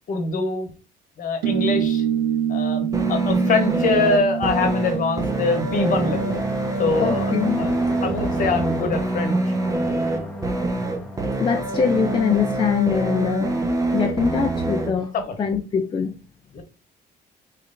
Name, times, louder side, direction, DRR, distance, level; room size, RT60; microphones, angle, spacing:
voice 1, 0.1-0.7 1.2-2.0 2.5-6.4 6.8-7.7 8.0-9.5 15.1-15.3 16.5-16.6, left 3 dB, 50° left, 1.1 m, -24 dB
sound 1, 1.4-8.4, right 9 dB, 85° right, 0.5 m, -27 dB
sound 2, 2.9-14.9, right 2 dB, 20° right, 0.8 m, -25 dB
sound 3, 4.2-12.9, left 1 dB, 5° left, 1.0 m, -37 dB
voice 2, 7.0-7.6 11.4-13.6 13.9-15.1 15.4-16.1, left 7 dB, 30° left, 0.4 m, -23 dB
3.2 x 3.2 x 3.8 m
cardioid pair, 110°, 17 cm